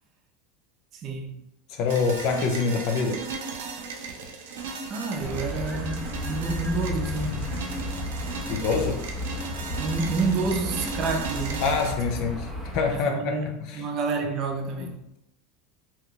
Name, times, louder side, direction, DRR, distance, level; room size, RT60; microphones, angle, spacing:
voice 1, 0.9-1.4 4.9-7.5 9.8-11.9 12.2-12.3 12.9-15.0, right 4 dB, 40° right, 0.5 m, -29 dB
voice 2, 1.7-3.2 8.5-9.0 11.6-13.8 14.8-14.9, left 5 dB, 55° left, 0.4 m, -26 dB
sound 1, 1.9-11.9, right 4 dB, 85° right, 0.5 m, -36 dB
sound 2, 5.2-13.0, left 1 dB, 10° left, 0.6 m, -33 dB
2.9 x 2.2 x 3.7 m
supercardioid pair, 135°, 0 cm